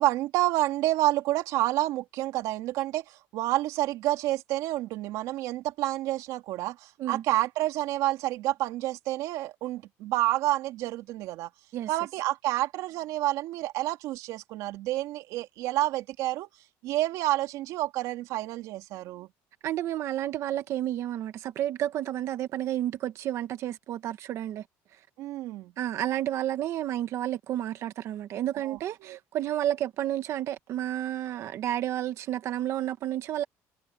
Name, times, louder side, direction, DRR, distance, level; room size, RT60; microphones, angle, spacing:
voice 1, 0.0-11.5 11.9-16.5 16.8-19.3 25.2-25.7 28.5-29.2, right 16 dB, 75° right, 2.8 m, -29 dB
voice 2, 19.6-24.6 25.8-33.4, right 12 dB, 55° right, 1.3 m, -31 dB
cardioid pair, 140°, 6 cm